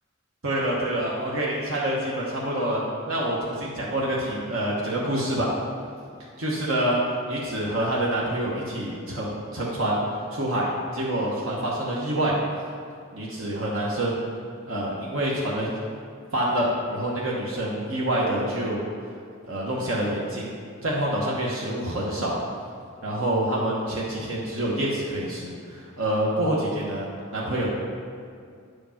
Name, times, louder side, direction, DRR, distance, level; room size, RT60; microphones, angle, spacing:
voice 1, 0.4-5.5 6.4-7.0 7.3-10.0 10.3-12.4 13.1-14.2 14.7-15.7 16.3-18.8 19.5-20.5 20.8-22.4 23.0-27.1 27.3-27.7, right 1 dB, 80° right, -4 dB, 1.1 m, -27 dB
9.1 x 5.0 x 5.7 m, 2.3 s
head